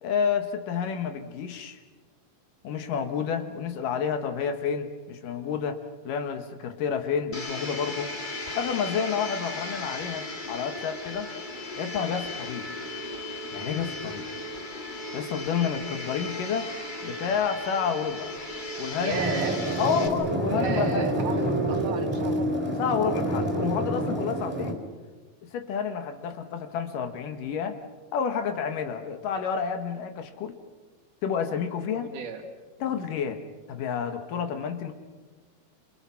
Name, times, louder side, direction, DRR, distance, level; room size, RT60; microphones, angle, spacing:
voice 1, 0.0-1.8 2.6-5.8 6.1-8.1 8.6-11.3 11.8-12.7 13.5-14.3 15.1-16.7 17.0-18.3 18.8-19.2 19.8-21.1 22.8-24.8 25.5-27.8 28.1-30.6 31.2-32.1 32.8-33.4 33.7-34.9, left 7 dB, 70° left, 7 dB, 2.9 m, -29 dB
Domestic sounds home sounds, 7.3-20.1, left 2 dB, 20° left, 1.6 m, -36 dB
voice 2, 19.0-19.7 20.4-22.6 31.9-32.4 32.9-33.0, right 5 dB, 60° right, 4 dB, 3.8 m, -34 dB
sound 1, 19.1-24.7, right 1 dB, 5° right, 3.7 m, -27 dB
29.0 x 28.5 x 5.8 m, 1.3 s
omnidirectional pair, 4.1 m